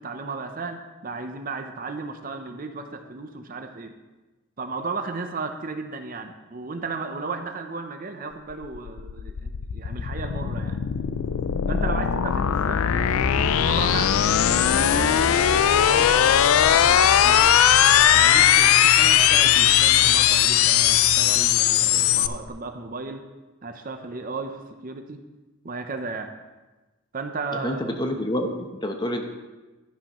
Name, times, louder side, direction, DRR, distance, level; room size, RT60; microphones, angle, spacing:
voice 1, 0.0-3.9 4.6-10.8 11.7-14.2 14.5-15.4 15.9-17.5 18.1-23.2 23.6-25.2 25.6-26.3 27.1-28.2, right 3 dB, 40° right, 6 dB, 0.6 m, -34 dB
sound 1, 8.5-22.3, left 10 dB, 75° left, 0.4 m, -19 dB
sound 2, 9.9-22.5, left 1 dB, 55° left, 0.7 m, -34 dB
voice 2, 27.5-29.2, left 1 dB, 20° left, 4 dB, 0.8 m, -28 dB
11.5 x 10.0 x 3.0 m, 1.2 s
head